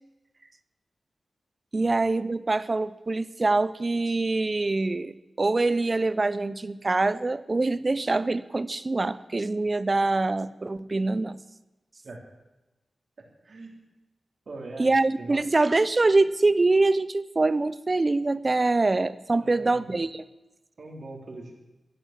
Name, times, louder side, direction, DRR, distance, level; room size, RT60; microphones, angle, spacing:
voice 1, 1.7-11.4 14.8-20.2, right 3 dB, 35° right, 17 dB, 0.7 m, -24 dB
voice 2, 14.5-14.9 15.2-15.4 19.4-19.8 20.8-21.5, right 2 dB, 60° right, 2 dB, 3.7 m, -41 dB
16.0 x 10.5 x 7.6 m, 1.0 s
wide cardioid pair, 75°, 0 cm